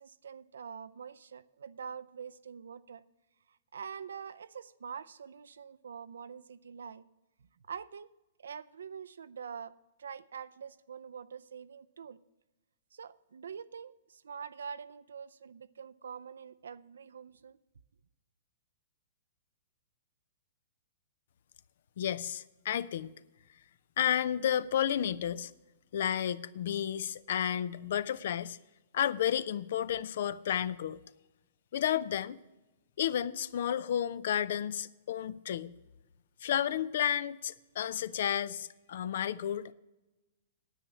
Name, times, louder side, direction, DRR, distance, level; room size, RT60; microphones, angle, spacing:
voice 1, 0.0-3.0 3.5-7.0 7.7-8.1 8.4-12.2 12.9-17.6, right 7 dB, 80° right, 0.4 m, -45 dB
voice 2, 22.0-23.1 24.0-25.5 25.9-28.6 28.9-31.0 31.7-32.4 33.0-35.7 36.4-39.7, left 10 dB, 65° left, 0.4 m, -32 dB
9.9 x 8.5 x 7.0 m
hypercardioid pair, 125°, 0 cm